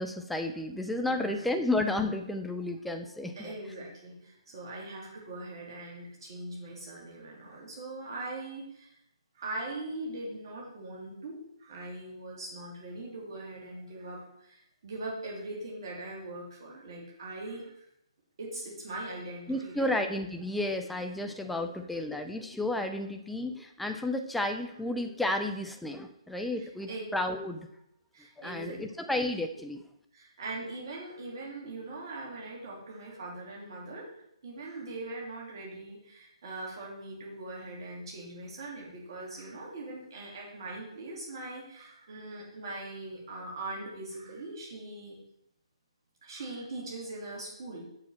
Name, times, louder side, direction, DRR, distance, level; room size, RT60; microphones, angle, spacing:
voice 1, 0.0-3.6 19.5-27.7 28.4-29.8, left 1 dB, ahead, 5 dB, 0.5 m, -32 dB
voice 2, 1.0-1.4 3.4-8.9 9.3-17.7 18.4-19.9 26.6-27.0 28.1-28.8 30.1-34.1 34.4-45.2 46.2-47.9, right 2 dB, 45° right, -3 dB, 3.1 m, -41 dB
7.1 x 6.7 x 4.3 m, 0.77 s
figure-of-eight pair, 145°, 3 cm